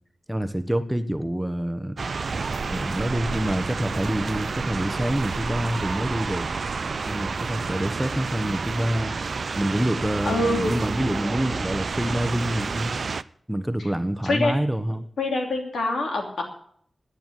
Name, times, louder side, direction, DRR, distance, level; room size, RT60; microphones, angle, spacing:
voice 1, 0.3-2.0 2.7-6.5 7.0-9.1 9.6-12.9 13.5-15.1, equal, 10° right, 11 dB, 1.2 m, -26 dB
sound 1, 2.0-13.2, right 4 dB, 70° right, 0.4 m, -30 dB
sound 2, 2.2-7.6, right 4 dB, 90° right, 1.3 m, -38 dB
voice 2, 10.2-10.8 14.2-14.5 15.2-16.4, left 2 dB, 90° left, 2 dB, 2.9 m, -25 dB
10.0 x 9.3 x 8.2 m, 0.63 s
cardioid pair, 55°, 0 cm